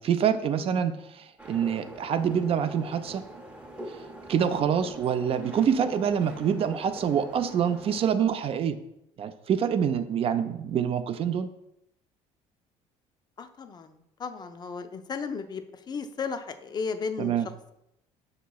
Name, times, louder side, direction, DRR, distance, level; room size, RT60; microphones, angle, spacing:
voice 1, 0.0-3.2 3.9-8.8 9.2-11.5 17.2-17.5, right 8 dB, 45° right, 10 dB, 0.4 m, -26 dB
sound 1, 1.4-8.1, right 1 dB, 10° right, 0.7 m, -44 dB
voice 2, 13.4-17.4, left 5 dB, 30° left, 9 dB, 0.4 m, -35 dB
6.2 x 2.9 x 2.3 m, 0.82 s
supercardioid pair, 90°, 14 cm